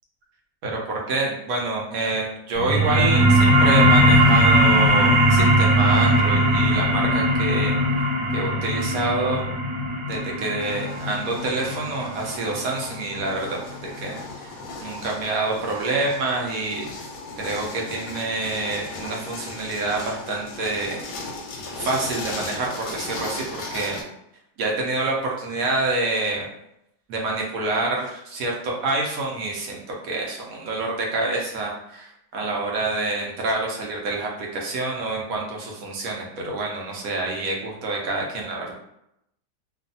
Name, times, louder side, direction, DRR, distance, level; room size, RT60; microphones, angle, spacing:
voice 1, 0.6-8.1 8.3-9.5 10.1-16.9 17.4-21.0 21.8-24.0 24.6-26.5 27.1-38.7, right 2 dB, 65° right, -1 dB, 1.0 m, -27 dB
sound 1, 2.6-13.7, equal, 85° right, 1.4 m, -19 dB
sound 2, 10.6-24.0, left 2 dB, 70° left, 0.9 m, -37 dB
2.7 x 2.4 x 2.6 m, 0.79 s
omnidirectional pair, 1.8 m